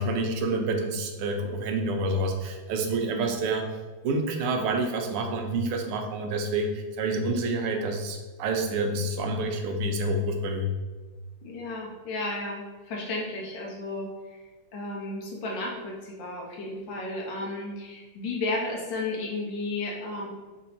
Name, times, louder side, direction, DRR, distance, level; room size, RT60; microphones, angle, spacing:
voice 1, 0.0-3.6 4.0-10.7, right 2 dB, 90° right, 4 dB, 1.6 m, -28 dB
voice 2, 11.4-14.1 14.7-20.3, left 2 dB, 65° left, -2 dB, 1.5 m, -33 dB
4.4 x 2.7 x 4.1 m, 1.3 s
omnidirectional pair, 2.4 m